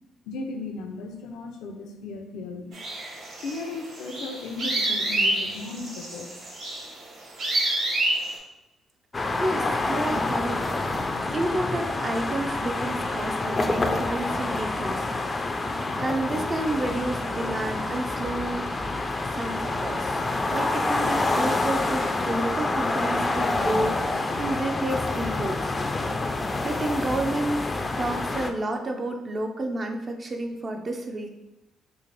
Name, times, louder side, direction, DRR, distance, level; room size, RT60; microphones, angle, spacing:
voice 1, 0.3-2.8 3.4-6.3, left 3 dB, 90° left, 4 dB, 0.5 m, -36 dB
sound 1, 2.7-8.4, right 1 dB, 70° right, 1.0 m, -28 dB
sound 2, 9.1-28.5, left 2 dB, 25° left, 0.4 m, -27 dB
voice 2, 9.4-10.8 11.3-15.0 16.0-18.7 19.3-20.2 20.5-25.7 26.6-27.7 28.0-31.3, right 1 dB, 35° right, 4 dB, 0.5 m, -30 dB
3.1 x 2.5 x 3.9 m, 0.96 s
cardioid pair, 90°, 0 cm